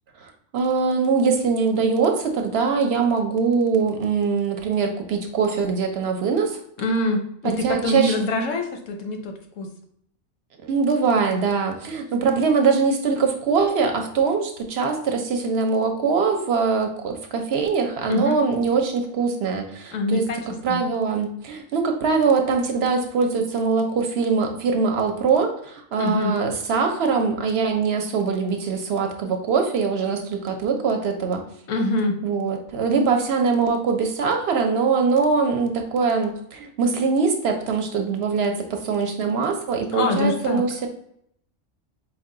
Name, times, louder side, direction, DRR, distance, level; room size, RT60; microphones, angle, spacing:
voice 1, 0.2-6.6 7.4-8.2 10.6-20.3 20.6-31.4 32.2-40.9, right 5 dB, 60° right, 4 dB, 0.8 m, -22 dB
voice 2, 6.8-9.7 18.1-18.4 19.9-20.4 20.7-20.8 26.0-26.3 31.7-32.2 39.9-40.6, left 2 dB, 85° left, 4 dB, 1.1 m, -24 dB
4.7 x 2.2 x 3.7 m, 0.71 s
omnidirectional pair, 1.3 m